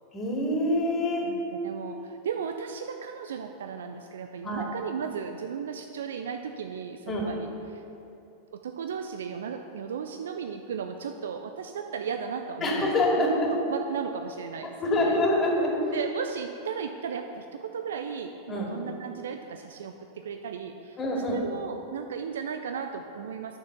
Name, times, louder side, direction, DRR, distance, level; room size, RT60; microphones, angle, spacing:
voice 1, 0.1-1.3 4.4-4.6 7.1-7.3 12.6-13.5 14.8-16.0 18.5-18.7 21.0-21.4, left 1 dB, 25° left, -2 dB, 2.3 m, -25 dB
voice 2, 1.2-7.8 8.5-12.9 13.2-13.4 13.7-15.2 15.9-21.0 21.3-23.6, right 6 dB, 70° right, 6 dB, 0.4 m, -35 dB
9.4 x 6.8 x 5.9 m, 2.8 s
figure-of-eight pair, 90°, 0 cm